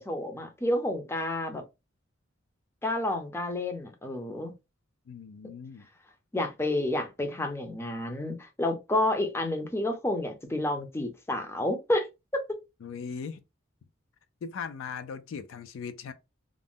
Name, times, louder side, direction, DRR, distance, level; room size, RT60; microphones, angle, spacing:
voice 1, 0.0-1.6 2.8-4.5 6.3-12.1 12.3-12.4, left 1 dB, 15° left, 0.5 m, -30 dB
voice 2, 5.1-5.9 12.8-13.4 14.4-16.1, left 6 dB, 75° left, 0.4 m, -39 dB
2.5 x 2.0 x 3.4 m
head